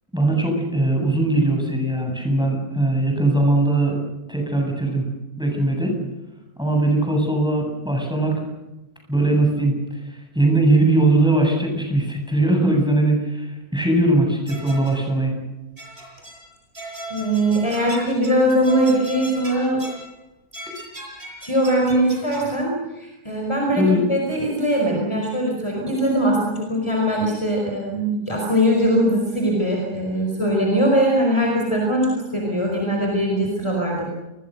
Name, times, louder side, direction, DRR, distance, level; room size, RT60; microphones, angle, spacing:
voice 1, 0.1-4.0 4.3-5.1 5.4-5.9 6.6-8.3 9.1-9.7 10.1-15.4 23.8-24.1, right 2 dB, 5° right, 1 dB, 7.9 m, -20 dB
sound 1, 14.5-15.1 15.8-16.5 16.7-20.1 20.5-22.5, right 1 dB, 35° right, 7.2 m, -38 dB
voice 2, 17.1-19.8 21.4-34.1, equal, 15° left, 0 dB, 5.0 m, -21 dB
29.0 x 21.5 x 6.6 m, 1.0 s
omnidirectional pair, 1.7 m